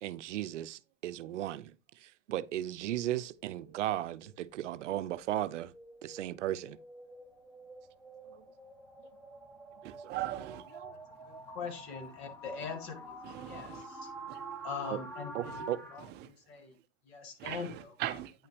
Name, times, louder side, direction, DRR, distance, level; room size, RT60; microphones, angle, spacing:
voice 1, 0.0-1.7 2.0-5.7 6.0-6.8 9.8-9.9 10.7-10.9 15.3-15.8, right 13 dB, 75° right, 0.6 m, -36 dB
sound 1, 3.3-16.0, right 2 dB, 5° left, 1.1 m, -48 dB
voice 2, 9.8-10.6 13.2-13.8 14.3-14.4 15.4-15.6 17.4-18.3, right 13 dB, 30° right, 0.5 m, -39 dB
voice 3, 11.5-13.0 13.5-14.1 14.6-16.1 16.5-16.8 17.1-17.9, left 5 dB, 55° left, 2.3 m, -42 dB
8.9 x 5.7 x 3.2 m
hypercardioid pair, 120°, 37 cm